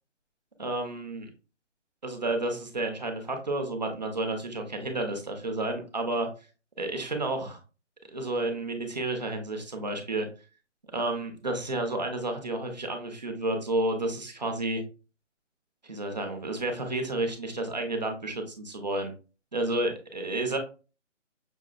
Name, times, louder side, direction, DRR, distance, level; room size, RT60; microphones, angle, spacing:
voice 1, 0.6-1.3 2.0-6.3 6.8-7.6 8.1-10.3 10.9-14.8 15.8-19.1 19.5-20.6, right 2 dB, 35° right, 3 dB, 0.7 m, -31 dB
6.1 x 2.6 x 2.4 m, 0.34 s
hypercardioid pair, 175°, 37 cm